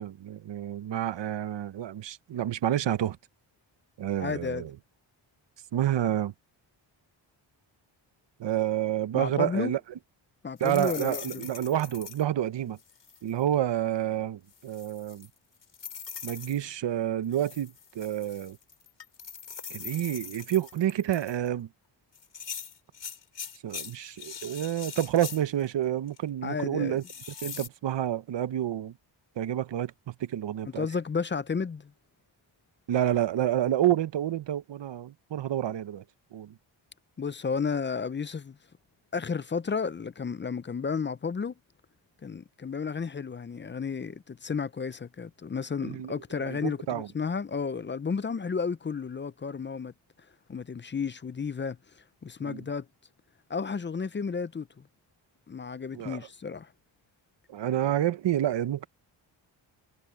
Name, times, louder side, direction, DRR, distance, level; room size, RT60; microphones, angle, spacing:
voice 1, 0.0-3.2 4.0-4.7 5.7-6.3 8.4-9.8 10.6-12.8 13.2-15.3 16.2-18.6 19.7-21.7 23.6-27.0 27.4-29.0 29.4-30.9 32.9-36.0 36.3-36.5 45.8-47.1 52.4-52.6 55.9-56.2 57.5-58.9, right 11 dB, 60° right, 0.8 m, -29 dB
voice 2, 4.2-4.7 9.1-9.7 10.4-11.5 26.4-27.0 30.8-31.9 37.2-38.6 39.1-41.5 42.2-49.9 50.5-52.9 53.5-54.9 55.5-56.7, left 5 dB, 25° left, 0.5 m, -32 dB
sound 1, 10.6-12.2 12.8-13.3 14.5-16.6 17.3-21.5 22.1-25.7 26.1-26.2 27.0-27.7, left 7 dB, 60° left, 5.6 m, -42 dB
wide cardioid pair, 115°, 48 cm